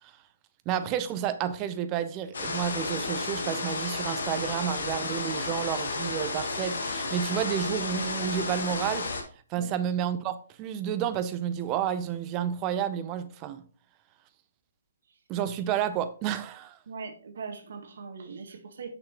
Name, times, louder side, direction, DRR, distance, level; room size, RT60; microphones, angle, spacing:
voice 1, 0.7-9.1 9.5-13.6 15.3-16.8, right 9 dB, 25° right, 0.6 m, -30 dB
sound 1, 2.3-9.2, left 3 dB, 60° left, 1.4 m, -32 dB
voice 2, 16.9-18.9, right 5 dB, 60° right, 1.3 m, -40 dB
6.3 x 6.0 x 2.9 m
figure-of-eight pair, 135°, 0 cm